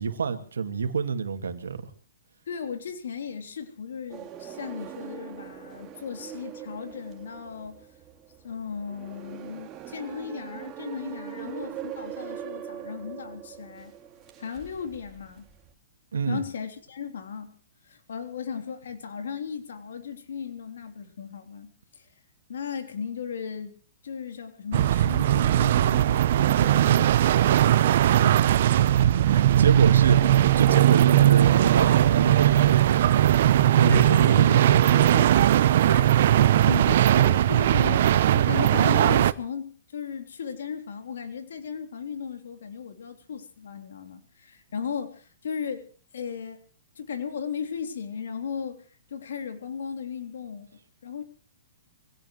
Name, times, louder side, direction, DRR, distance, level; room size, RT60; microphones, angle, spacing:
voice 1, 0.0-1.8 16.1-16.4 28.2-28.3 29.0-34.9, right 5 dB, 80° right, 7 dB, 2.5 m, -27 dB
voice 2, 2.5-7.9 8.4-13.9 14.4-15.5 16.3-17.6 17.8-22.1 22.5-23.8 24.0-27.5 33.8-35.4 35.8-45.9 46.1-46.6 46.9-50.7 51.0-51.2, left 7 dB, 70° left, 6 dB, 3.4 m, -36 dB
sound 1, 4.1-15.7, right 10 dB, 25° right, 2.6 m, -42 dB
sound 2, 24.7-39.3, right 12 dB, 60° right, 0.8 m, -19 dB
25.0 x 17.5 x 3.2 m, 0.43 s
hypercardioid pair, 125°, 0 cm